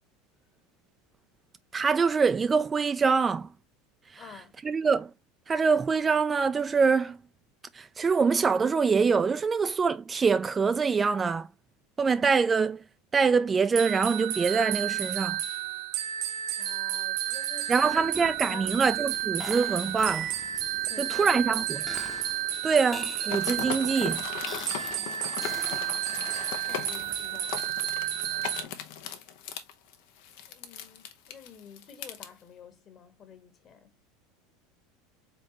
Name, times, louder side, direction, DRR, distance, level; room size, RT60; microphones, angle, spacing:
voice 1, 1.7-3.5 4.1-4.2 4.6-5.1 5.5-7.2 7.7-11.5 12.0-12.8 13.1-15.4 17.7-20.3 21.0-21.6 22.6-24.2, right 5 dB, 20° right, 0.4 m, -24 dB
voice 2, 4.2-4.5 16.6-18.9 20.9-21.7 24.9-25.6 26.7-27.7 30.5-33.9, left 6 dB, 40° left, 1.5 m, -49 dB
sound 1, 13.8-28.6, right 11 dB, 65° right, 0.9 m, -32 dB
sound 2, 17.7-27.6, left 1 dB, 5° left, 0.8 m, -45 dB
sound 3, 23.2-32.3, left 9 dB, 70° left, 0.9 m, -38 dB
4.3 x 3.7 x 2.9 m
supercardioid pair, 115°, 0 cm